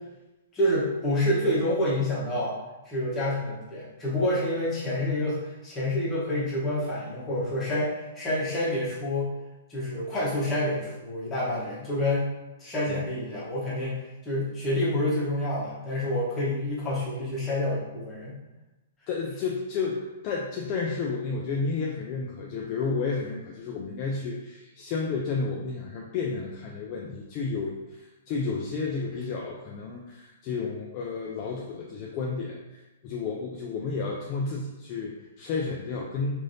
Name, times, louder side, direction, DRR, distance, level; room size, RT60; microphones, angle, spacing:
voice 1, 0.5-2.6 2.8-9.3 9.7-12.3 12.6-18.3, left 1 dB, 15° left, -8 dB, 1.0 m, -28 dB
voice 2, 19.1-36.4, left 4 dB, 30° left, -2 dB, 0.3 m, -31 dB
3.2 x 2.6 x 2.6 m, 1.1 s
hypercardioid pair, 160°, 0 cm